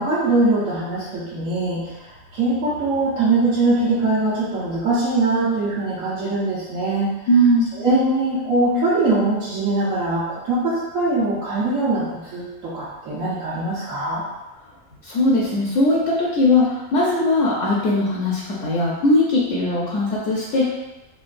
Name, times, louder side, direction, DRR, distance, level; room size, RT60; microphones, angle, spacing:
voice 1, 0.0-1.8 2.3-7.1 7.8-14.2, right 2 dB, 80° right, -10 dB, 1.2 m, -22 dB
voice 2, 7.3-7.7 15.0-20.7, left 1 dB, 75° left, -4 dB, 0.9 m, -19 dB
3.8 x 2.2 x 2.5 m, 1.0 s
omnidirectional pair, 1.4 m